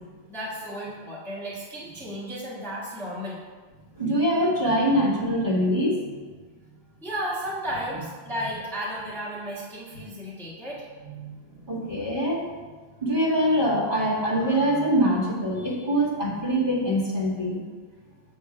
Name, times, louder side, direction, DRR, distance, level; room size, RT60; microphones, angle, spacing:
voice 1, 0.3-3.4 7.0-10.9, equal, ahead, -7 dB, 1.2 m, -33 dB
voice 2, 4.0-6.2 11.1-12.5 13.0-17.6, equal, 35° right, -5 dB, 2.0 m, -24 dB
7.2 x 3.8 x 6.5 m, 1.4 s
omnidirectional pair, 1.5 m